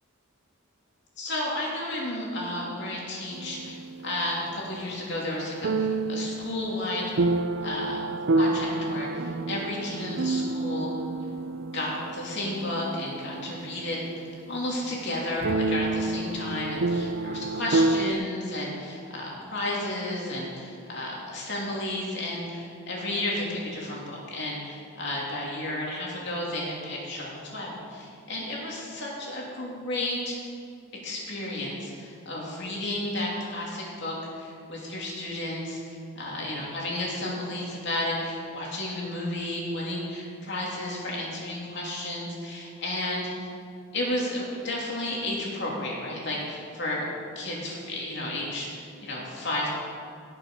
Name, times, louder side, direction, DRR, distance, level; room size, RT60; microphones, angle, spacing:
voice 1, 1.2-7.1 7.6-8.0 8.3-10.9 11.7-30.4 31.0-43.5 43.9-47.0 47.3-49.7, left 1 dB, 50° left, -4 dB, 2.9 m, -32 dB
sound 1, 3.3-4.7 5.6-14.4 14.8-14.9 15.4-18.1, right 2 dB, 55° right, 0.4 m, -29 dB
18.0 x 6.7 x 5.6 m, 2.3 s
head